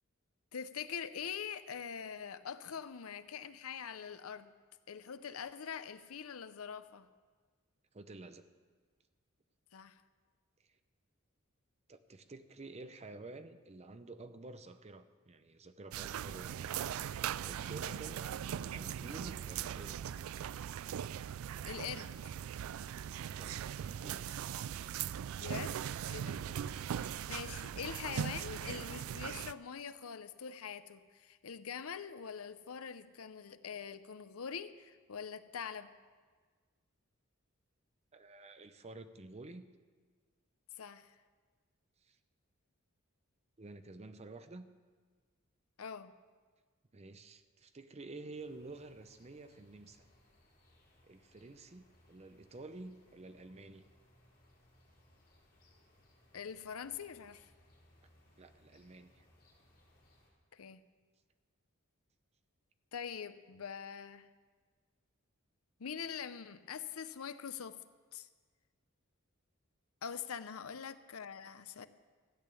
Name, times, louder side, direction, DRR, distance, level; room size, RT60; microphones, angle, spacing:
voice 1, 0.5-4.5 4.9-7.1 9.7-10.0 17.8-18.0 21.7-22.1 25.4-25.7 26.1-35.9 40.8-41.1 45.8-46.1 56.3-57.5 60.5-60.8 62.9-64.3 65.8-67.8 68.1-68.3 70.0-71.9, left 7 dB, 85° left, 13 dB, 0.6 m, -44 dB
voice 2, 7.9-8.4 11.9-16.6 17.4-20.0 23.4-24.4 38.1-39.7 42.1-42.2 43.6-44.7 46.9-50.0 51.0-53.8 58.4-59.3, right 2 dB, 30° right, 10 dB, 0.6 m, -50 dB
sound 1, 15.9-29.5, right 9 dB, 70° right, 0.3 m, -40 dB
sound 2, 48.3-60.3, left 1 dB, 45° left, 3.6 m, -67 dB
14.0 x 8.9 x 7.1 m, 1.5 s
head